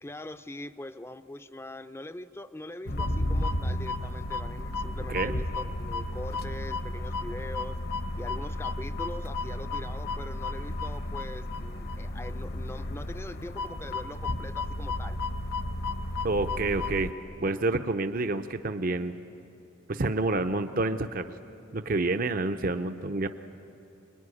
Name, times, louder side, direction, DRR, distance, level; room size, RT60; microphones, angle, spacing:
voice 1, 0.0-7.8 8.1-15.2, left 1 dB, 10° left, 11 dB, 0.5 m, -42 dB
sound 1, 2.8-17.1, left 2 dB, 50° left, 0.9 m, -33 dB
voice 2, 16.2-17.1 17.4-19.1 19.9-21.3 21.7-23.3, right 2 dB, 45° right, 8 dB, 0.7 m, -28 dB
25.5 x 21.5 x 9.8 m, 2.8 s
head